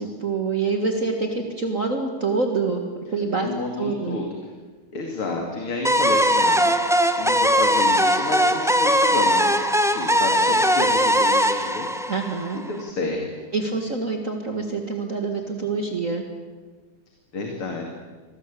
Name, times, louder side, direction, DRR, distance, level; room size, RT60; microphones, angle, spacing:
voice 1, 0.0-2.8 3.1-3.5 3.8-4.2 12.1-12.6 13.5-16.2, right 4 dB, 40° right, 4 dB, 2.1 m, -26 dB
voice 2, 3.4-4.3 4.9-6.9 7.2-11.9 12.6-13.5 17.3-17.8, left 3 dB, 80° left, 2 dB, 3.4 m, -30 dB
sound 1, 5.8-12.8, equal, 5° right, 0.5 m, -20 dB
27.0 x 18.5 x 8.5 m, 1.4 s
omnidirectional pair, 2.4 m